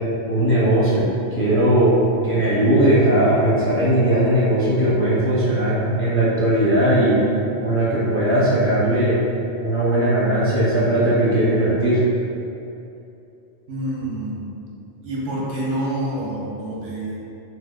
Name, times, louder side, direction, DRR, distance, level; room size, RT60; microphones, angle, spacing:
voice 1, 0.3-1.0 1.4-2.0 2.2-7.2 7.6-9.2 9.6-12.0, right 1 dB, 15° left, -10 dB, 0.4 m, -18 dB
voice 2, 13.7-14.5 15.0-17.2, right 1 dB, 90° right, -5 dB, 1.1 m, -27 dB
4.0 x 2.2 x 2.4 m, 2.7 s
omnidirectional pair, 1.2 m